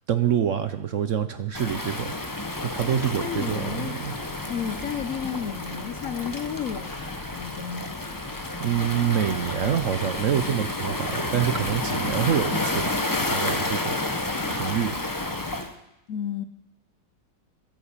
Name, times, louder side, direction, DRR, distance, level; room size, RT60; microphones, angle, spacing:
voice 1, 0.1-2.1 2.7-4.1 8.4-12.9 13.3-13.9 14.5-14.9, right 9 dB, 60° right, 10 dB, 0.8 m, -26 dB
Waves surf, 1.5-15.7, left 2 dB, 15° left, 0.7 m, -30 dB
voice 2, 3.2-4.0 4.5-6.9 7.2-8.0 16.1-16.4, left 8 dB, 65° left, 10 dB, 0.9 m, -32 dB
sound 1, 4.3-10.0, left 3 dB, 80° left, 4.2 m, -47 dB
13.5 x 11.0 x 7.2 m, 0.88 s
omnidirectional pair, 1.9 m